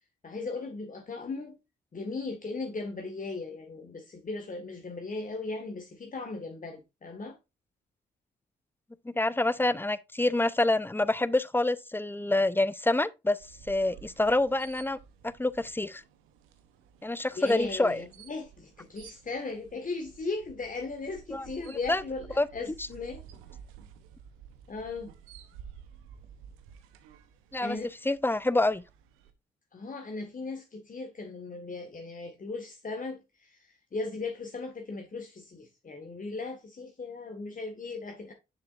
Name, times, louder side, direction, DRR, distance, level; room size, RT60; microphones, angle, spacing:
voice 1, 0.2-1.6 1.9-7.4 17.3-23.2 24.7-25.1 27.6-27.9 29.7-38.3, left 3 dB, 40° left, 1.6 m, -37 dB
voice 2, 9.2-13.4 13.7-15.0 15.4-16.0 17.0-18.0 21.3-21.5 21.9-22.0 22.4-22.5 27.5-27.8 28.0-28.8, left 2 dB, 10° left, 0.7 m, -26 dB
sound 1, 13.4-29.3, right 8 dB, 85° right, 0.9 m, -52 dB
6.8 x 6.7 x 2.5 m
hypercardioid pair, 45°, 21 cm